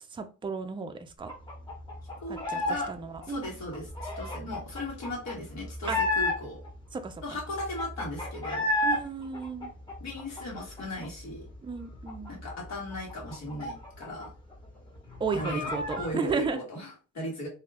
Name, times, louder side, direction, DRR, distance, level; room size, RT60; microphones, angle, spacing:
voice 1, 0.1-1.3 2.3-3.5 4.4-4.6 5.9-6.0 6.9-7.1 8.8-9.7 11.6-12.3 15.2-16.6, right 5 dB, 15° right, 0.4 m, -34 dB
sound 1, 1.3-2.9 3.2-6.7 7.1-7.2 7.4-9.0 9.3-11.1 11.4-11.5 11.8-14.3 14.5-14.6 15.0-16.1, left 2 dB, 15° left, 1.2 m, -32 dB
voice 2, 2.2-2.9 3.3-6.6 7.2-8.7 10.0-11.5 12.3-14.3 15.3-17.5, left 1 dB, 60° left, 1.8 m, -37 dB
3.0 x 2.3 x 3.4 m
cardioid pair, 90°, 30 cm